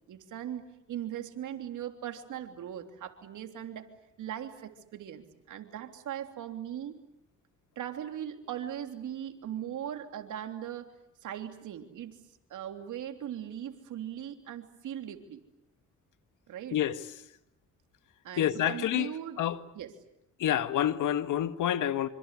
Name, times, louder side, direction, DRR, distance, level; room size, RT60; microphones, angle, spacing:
voice 1, 0.1-0.6 0.9-3.9 4.2-7.0 7.7-10.9 11.2-12.2 12.5-15.4 16.5-16.8 18.2-19.4 19.7-19.9, right 10 dB, 80° right, 3.3 m, -39 dB
voice 2, 18.4-19.1 19.4-19.6 20.4-22.1, left 11 dB, 80° left, 1.8 m, -28 dB
27.0 x 25.5 x 8.3 m
cardioid pair, 75°, 30 cm